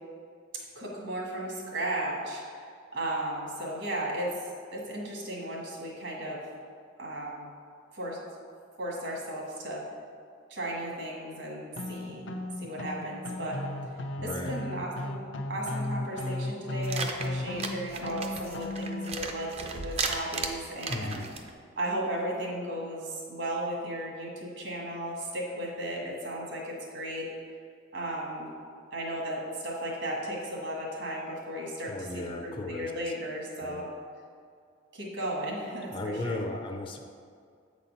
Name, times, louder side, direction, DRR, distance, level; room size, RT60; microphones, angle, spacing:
voice 1, 0.7-4.3 4.7-6.4 7.0-7.4 7.9-8.2 8.8-9.8 10.5-12.2 12.6-13.6 14.2-15.2 15.5-21.2 21.8-27.3 27.9-28.5 28.9-33.8 34.9-36.4, right 1 dB, 70° right, -2 dB, 1.7 m, -35 dB
sound 1, 11.8-19.2, left 1 dB, 80° left, 0.6 m, -35 dB
voice 2, 14.2-14.6 20.9-21.3 31.9-33.1 33.6-33.9 35.9-37.0, left 2 dB, 25° left, 4 dB, 0.5 m, -36 dB
sound 2, 16.8-21.5, right 4 dB, 30° right, 0.5 m, -35 dB
7.8 x 4.1 x 5.5 m, 2.2 s
head